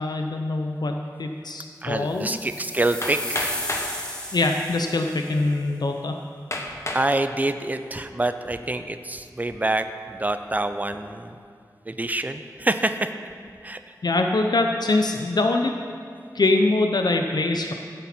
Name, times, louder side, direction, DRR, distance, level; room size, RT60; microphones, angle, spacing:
voice 1, 0.0-2.4 4.3-6.2 14.0-15.7 16.3-17.7, left 2 dB, 70° left, 4 dB, 0.7 m, -23 dB
voice 2, 1.8-3.6 6.9-11.3 11.9-13.1 13.6-13.8, right 2 dB, 20° right, 9 dB, 0.6 m, -26 dB
sound 1, 2.1-5.3, equal, 15° left, 2.0 m, -34 dB
Hammer, 3.0-3.9 4.9-5.0 5.5-5.6 6.5-7.1 7.7-8.1, left 1 dB, 40° left, 1.3 m, -30 dB
15.0 x 8.3 x 4.4 m, 2.3 s
wide cardioid pair, 75°, 7 cm